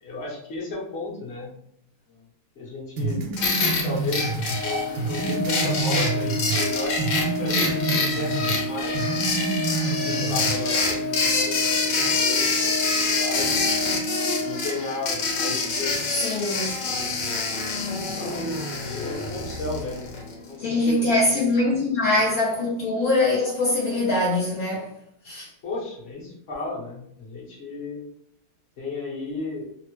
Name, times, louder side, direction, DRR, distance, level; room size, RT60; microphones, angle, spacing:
voice 1, 0.0-1.5 2.6-3.2 3.8-9.0 10.0-13.6 14.4-16.4 16.8-17.0 18.1-18.6 18.9-20.9 21.2-21.4 25.6-28.0 28.8-29.6, left 3 dB, 50° left, -4 dB, 0.8 m, -34 dB
sound 1, 3.0-6.7 7.0-8.6 8.9-10.6, right 3 dB, 80° right, 1.5 m, -28 dB
sound 2, 3.4-20.3, left 4 dB, 65° left, 1.2 m, -26 dB
Organ, 4.5-15.1, equal, 60° right, 0.5 m, -31 dB
voice 2, 16.2-16.8 20.6-24.9 25.2-25.5, left 2 dB, 80° left, -5 dB, 0.7 m, -23 dB
3.4 x 2.0 x 3.0 m, 0.73 s
omnidirectional pair, 2.4 m